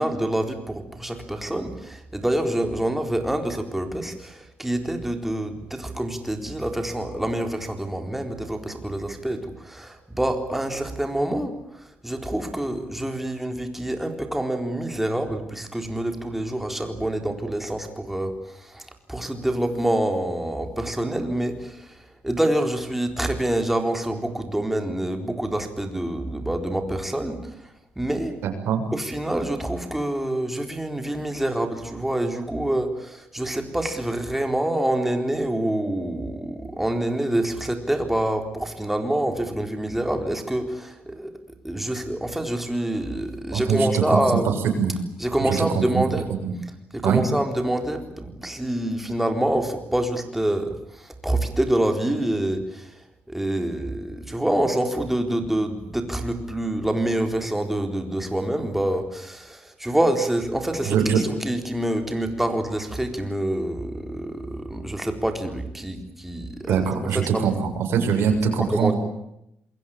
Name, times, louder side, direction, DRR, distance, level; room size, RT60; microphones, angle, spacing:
voice 1, 0.0-27.4 28.0-28.4 28.9-41.3 41.6-44.5 45.2-46.3 46.9-52.9 53.3-61.1 61.4-66.8 67.1-67.6 68.7-68.9, right 1 dB, 5° right, 5 dB, 4.1 m, -26 dB
voice 2, 28.4-28.8 43.5-44.2 44.8-44.9 45.4-46.0 46.4-46.5 47.0-47.2 60.8-61.2 66.7-68.9, right 7 dB, 80° right, 5 dB, 7.0 m, -23 dB
27.5 x 22.0 x 8.9 m, 0.80 s
cardioid pair, 120°, 4 cm